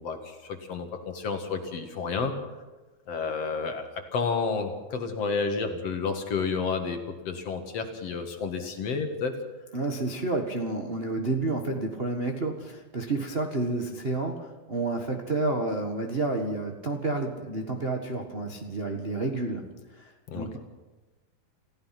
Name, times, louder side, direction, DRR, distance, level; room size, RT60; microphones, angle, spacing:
voice 1, 0.0-2.3 3.1-7.0 7.3-9.4 20.3-20.6, left 5 dB, 50° left, 5 dB, 2.5 m, -30 dB
voice 2, 9.7-19.7 20.0-20.6, right 2 dB, 55° right, 2 dB, 0.6 m, -30 dB
28.5 x 15.5 x 5.9 m, 1.2 s
omnidirectional pair, 4.0 m